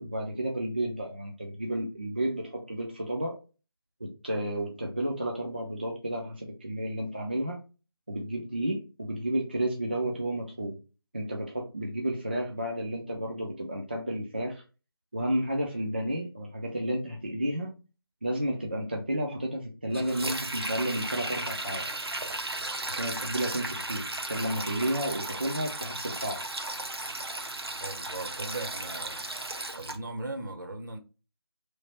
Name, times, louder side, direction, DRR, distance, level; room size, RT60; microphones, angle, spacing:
voice 1, 0.0-3.4 4.0-7.6 8.1-10.8 11.1-14.6 15.1-17.7 18.2-21.9 22.9-26.4, right 1 dB, 25° right, 0.4 m, -32 dB
Sink (filling or washing), 19.9-30.0, right 2 dB, 80° right, 0.8 m, -35 dB
voice 2, 27.8-29.2 29.7-31.0, right 2 dB, 50° right, 0.8 m, -38 dB
3.2 x 2.5 x 4.0 m
figure-of-eight pair, 165°, 13 cm